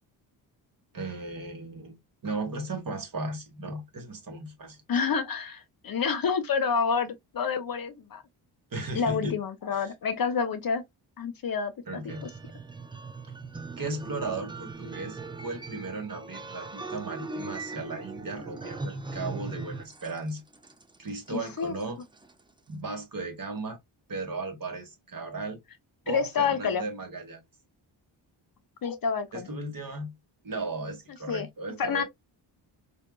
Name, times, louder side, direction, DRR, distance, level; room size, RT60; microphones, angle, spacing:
voice 1, 0.9-2.0 2.2-4.8 8.7-9.4 9.7-9.9 11.9-12.3 13.2-13.3 13.8-20.4 21.0-22.0 22.7-23.8 24.1-25.6 26.0-27.4 29.3-30.1 30.4-32.0, right 2 dB, 45° right, 1.4 m, -36 dB
voice 2, 4.9-8.2 8.9-10.8 11.2-11.7 12.0-12.3 21.3-21.8 26.1-26.8 28.8-29.5 31.3-31.5 31.8-32.0, left 6 dB, 45° left, 0.7 m, -28 dB
sound 1, 12.1-22.4, right 3 dB, 10° right, 0.4 m, -40 dB
3.5 x 2.7 x 2.3 m
cardioid pair, 60°, 48 cm